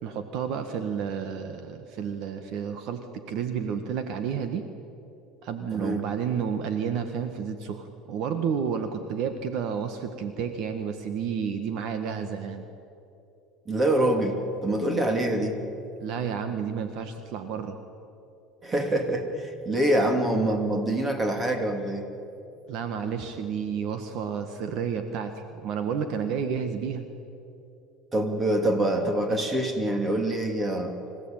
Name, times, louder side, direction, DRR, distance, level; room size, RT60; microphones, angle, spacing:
voice 1, 0.0-4.6 5.4-12.6 16.0-17.8 22.7-27.1, right 7 dB, 55° right, 7 dB, 1.7 m, -31 dB
voice 2, 5.7-6.0 13.7-15.6 18.6-22.1 28.1-31.0, right 1 dB, 20° right, 4 dB, 3.2 m, -25 dB
25.0 x 16.5 x 9.1 m, 2.8 s
supercardioid pair, 125°, 0 cm